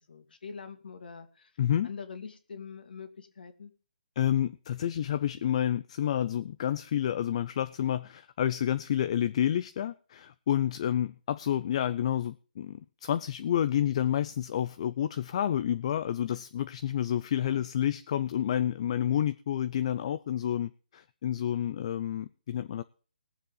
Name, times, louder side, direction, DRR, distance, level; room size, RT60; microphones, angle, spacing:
voice 1, 0.1-1.5 1.8-3.7 17.4-17.7, left 5 dB, 65° left, 7 dB, 2.4 m, -44 dB
voice 2, 1.6-1.9 4.2-22.8, left 10 dB, 35° left, 13 dB, 0.5 m, -29 dB
21.0 x 7.5 x 4.0 m, 0.38 s
hypercardioid pair, 160°, 5 cm